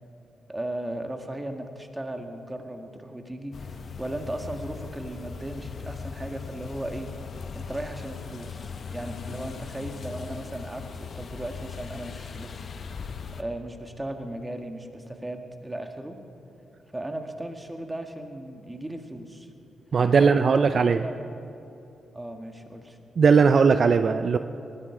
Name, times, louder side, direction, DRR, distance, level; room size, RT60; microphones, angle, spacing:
voice 1, 0.5-7.1 7.5-12.6 12.9-13.1 13.4-16.2 16.9-19.5 20.1-21.1 22.1-23.0, right 1 dB, 15° right, 5 dB, 1.8 m, -36 dB
sound 1, 3.5-13.4, left 6 dB, 60° left, 0.9 m, -39 dB
voice 2, 19.9-21.0 23.2-24.4, right 5 dB, 55° right, 10 dB, 0.4 m, -19 dB
19.5 x 13.0 x 5.0 m, 2.9 s
supercardioid pair, 45°, 0 cm